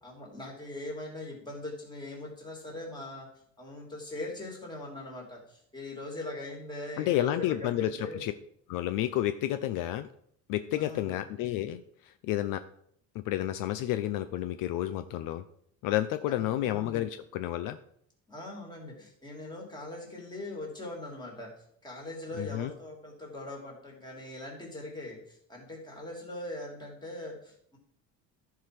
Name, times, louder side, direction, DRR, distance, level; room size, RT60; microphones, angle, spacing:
voice 1, 0.0-3.3 3.6-8.2 10.8-11.2 16.3-16.7 18.3-21.5 21.8-27.8, left 1 dB, 10° left, -2 dB, 3.0 m, -41 dB
voice 2, 7.0-8.3 8.7-10.1 10.5-11.8 12.2-12.6 13.1-15.4 15.8-17.8 22.4-22.7, left 13 dB, 65° left, 11 dB, 0.7 m, -30 dB
13.5 x 4.9 x 6.0 m, 0.67 s
cardioid pair, 170°, 35 cm